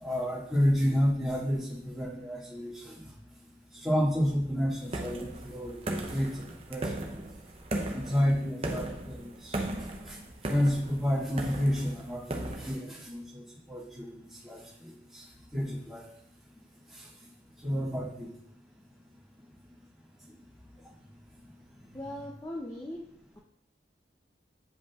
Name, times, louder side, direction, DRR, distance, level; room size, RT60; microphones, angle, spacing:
voice 1, 0.0-3.0 3.8-7.1 7.9-9.5 10.5-13.4 13.7-14.2 14.4-14.9 15.5-16.0 17.6-18.3, equal, ahead, -9 dB, 1.9 m, -30 dB
sound 1, 4.9-12.8, right 1 dB, 35° right, 0.6 m, -37 dB
voice 2, 21.9-23.0, left 1 dB, 15° left, -2 dB, 0.5 m, -39 dB
9.0 x 5.2 x 2.4 m, 0.72 s
head